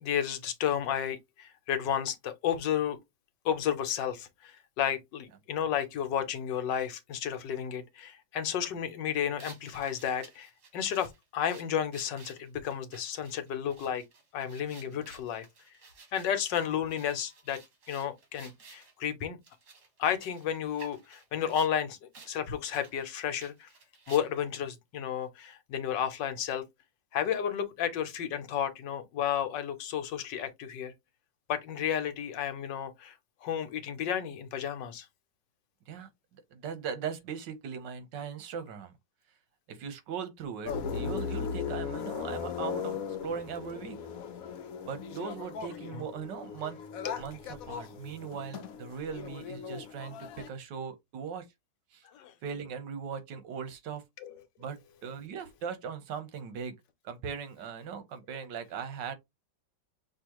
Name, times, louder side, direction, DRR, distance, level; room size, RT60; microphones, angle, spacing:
voice 1, 0.0-3.0 3.4-14.0 14.3-15.5 16.1-17.6 17.9-19.4 20.0-23.7 24.1-26.6 27.1-30.9 31.5-33.2 33.4-35.1 45.9-46.0 47.0-47.2 52.1-52.3 54.2-54.3, left 9 dB, 85° left, 1.5 m, -32 dB
sound 1, 9.4-18.9 19.4-21.7 22.1-22.3 22.6-24.5, right 4 dB, 65° right, 2.3 m, -54 dB
voice 2, 36.5-38.9 39.7-44.0 44.8-46.8 47.2-51.5 51.9-52.0 52.4-54.0 54.6-56.7 57.0-59.1, right 7 dB, 80° right, 1.6 m, -39 dB
sound 2, 40.7-50.5, left 6 dB, 60° left, 1.0 m, -38 dB
6.1 x 2.7 x 3.0 m
omnidirectional pair, 1.9 m